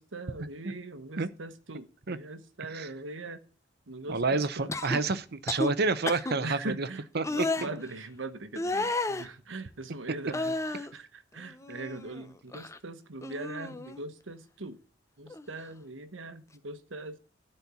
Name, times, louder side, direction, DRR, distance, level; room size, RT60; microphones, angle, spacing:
voice 1, 0.0-3.4 3.9-4.8 6.4-14.8 15.2-17.2, right 2 dB, 70° right, 1.2 m, -41 dB
voice 2, 4.1-6.9 7.1-7.2 7.6-7.7, right 3 dB, 55° right, 0.8 m, -29 dB
sound 1, 4.7-5.0 5.5-5.7 6.1-6.4 7.2-7.7 8.6-9.3 10.3-10.9 11.4-12.2 12.5-12.8 13.2-14.0 15.3-15.5, left 2 dB, 15° left, 0.7 m, -32 dB
12.0 x 4.4 x 8.2 m
head